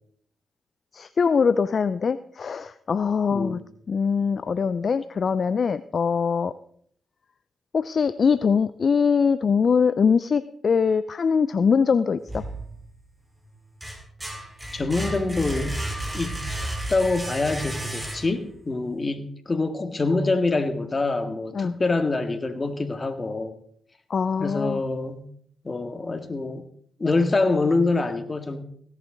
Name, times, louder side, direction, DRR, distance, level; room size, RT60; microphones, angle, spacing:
voice 1, 0.9-3.6 3.9-6.5 7.7-12.4 21.5-21.8 24.1-24.8, left 6 dB, 55° left, 14 dB, 0.5 m, -22 dB
voice 2, 3.3-3.6 14.7-15.8 16.1-16.5 16.9-23.6 24.4-25.3 25.6-26.7 27.0-28.6, left 3 dB, 35° left, 8 dB, 2.0 m, -25 dB
sound 1, 12.3-13.1 13.5-18.6, right 1 dB, 15° right, 4.8 m, -33 dB
17.0 x 10.5 x 3.9 m, 0.64 s
supercardioid pair, 45°, 0 cm